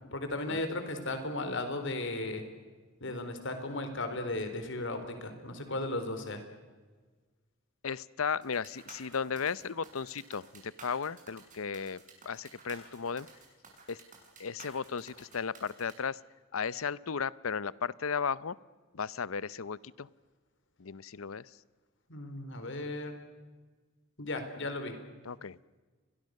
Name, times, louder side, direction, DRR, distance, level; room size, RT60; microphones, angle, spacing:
voice 1, 0.1-2.4 3.0-6.4 22.1-23.2 24.2-24.9, left 2 dB, 65° left, 8 dB, 4.1 m, -35 dB
voice 2, 7.8-13.3 13.9-14.0 14.4-16.2 16.5-18.6 18.9-20.1 20.8-21.6 25.2-25.6, left 6 dB, 85° left, 20 dB, 0.7 m, -35 dB
sound 1, 8.4-15.9, right 4 dB, 40° right, 6.7 m, -53 dB
30.0 x 23.0 x 6.6 m, 1.4 s
head